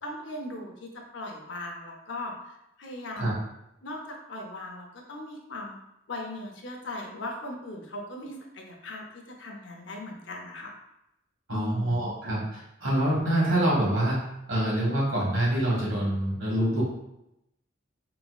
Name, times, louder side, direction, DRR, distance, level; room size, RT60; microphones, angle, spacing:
voice 1, 0.0-3.3 3.8-5.8 6.1-10.7 11.5-12.1, left 2 dB, 65° left, 1 dB, 0.6 m, -39 dB
voice 2, 11.5-14.2 14.5-16.8, right 1 dB, 90° right, -5 dB, 1.5 m, -26 dB
4.0 x 2.5 x 2.3 m, 0.85 s
head